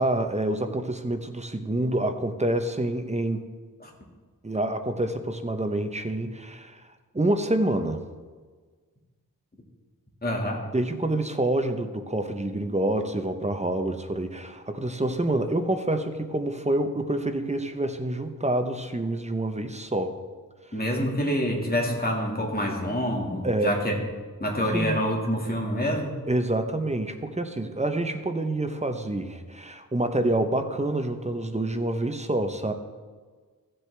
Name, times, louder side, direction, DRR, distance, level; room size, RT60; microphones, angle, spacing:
voice 1, 0.0-3.5 4.4-6.8 7.1-8.0 10.7-20.2 21.9-22.0 23.4-23.8 24.7-25.0 26.3-32.7, right 1 dB, 20° right, 7 dB, 0.8 m, -27 dB
voice 2, 10.2-10.7 20.7-23.9 24.4-26.1, equal, 25° left, 0 dB, 2.0 m, -27 dB
15.0 x 7.8 x 3.4 m, 1.5 s
wide cardioid pair, 85°, 36 cm